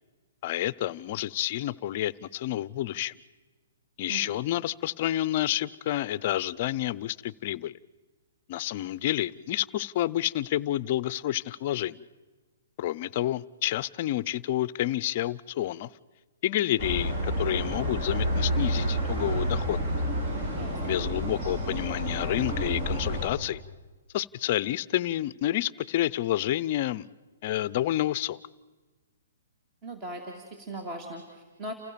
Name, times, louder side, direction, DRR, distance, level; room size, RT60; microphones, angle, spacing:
voice 1, 0.4-3.1 4.0-7.7 8.5-12.0 12.8-15.9 16.4-19.8 20.8-23.6 24.1-27.1 27.4-28.4, left 13 dB, 40° left, 0.6 m, -29 dB
sound 1, 16.8-23.3, equal, 45° right, 5.8 m, -29 dB
voice 2, 20.5-21.0 29.8-31.7, right 1 dB, 20° right, 2.4 m, -39 dB
29.0 x 15.5 x 6.9 m
hypercardioid pair, 155°, 0 cm